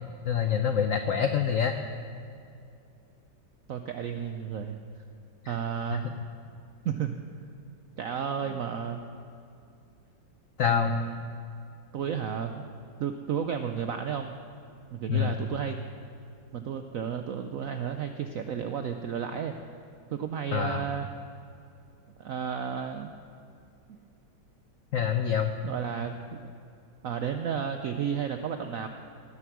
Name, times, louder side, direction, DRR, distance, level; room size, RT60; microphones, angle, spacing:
voice 1, 0.3-1.7 5.9-6.0 10.6-10.9 15.1-15.3 20.5-20.8 24.9-25.5, left 8 dB, 75° left, 7 dB, 0.7 m, -26 dB
voice 2, 3.7-4.8 5.5-6.1 6.8-7.2 8.0-9.0 10.7-11.2 11.9-12.7 13.0-14.3 14.9-15.8 16.5-19.5 20.1-21.1 22.2-23.1 25.6-26.4 27.0-28.9, right 7 dB, 85° right, 7 dB, 0.7 m, -32 dB
18.5 x 7.9 x 6.1 m, 2.5 s
omnidirectional pair, 2.1 m